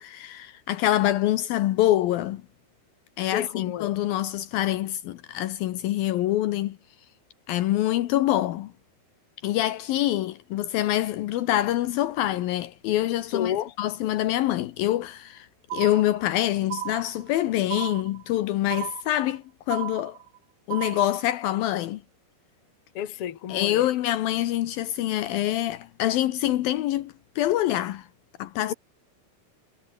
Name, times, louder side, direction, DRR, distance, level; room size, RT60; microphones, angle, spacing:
voice 1, 0.0-2.4 3.2-6.8 7.5-8.7 9.4-15.5 15.7-20.2 20.7-22.0 23.5-28.1 28.4-28.7, left 14 dB, 75° left, 2.6 m, -25 dB
voice 2, 3.3-3.9 13.3-13.7 22.9-23.8 28.7-28.8, left 10 dB, 45° left, 2.1 m, -30 dB
sound 1, 15.7-16.4 16.7-17.4 17.7-18.4 18.7-19.4 19.7-20.4 20.7-21.2, right 14 dB, 70° right, 1.8 m, -34 dB
omnidirectional pair, 4.5 m